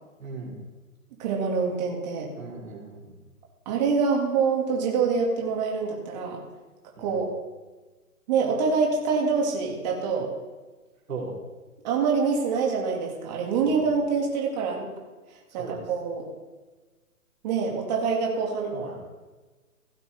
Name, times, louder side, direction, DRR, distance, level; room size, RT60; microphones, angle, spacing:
voice 1, 0.2-0.5 2.4-3.1 7.0-7.1 11.1-11.3 13.6-13.8 15.6-15.8 18.7-19.0, right 4 dB, 70° right, -3 dB, 3.8 m, -37 dB
voice 2, 1.2-2.3 3.7-6.4 7.0-7.3 8.3-10.3 11.8-14.9 15.5-16.2 17.4-18.7, right 5 dB, 30° right, -1 dB, 2.1 m, -25 dB
16.0 x 8.3 x 3.4 m, 1.2 s
hypercardioid pair, 155°, 44 cm